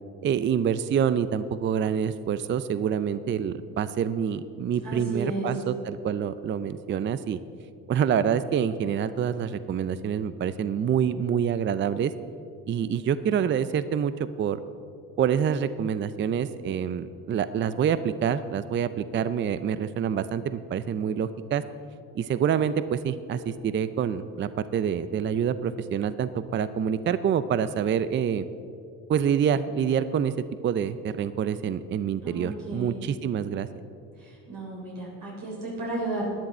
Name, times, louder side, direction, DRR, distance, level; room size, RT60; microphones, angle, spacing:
voice 1, 0.2-7.4 7.9-12.1 12.7-14.6 15.2-21.6 22.1-28.5 29.1-30.3 30.6-33.7, right 8 dB, 30° right, 14 dB, 0.5 m, -26 dB
voice 2, 4.8-5.5 32.2-33.0 34.5-36.3, right 2 dB, 55° right, -4 dB, 3.7 m, -33 dB
14.5 x 10.5 x 4.3 m, 2.5 s
supercardioid pair, 80°, 38 cm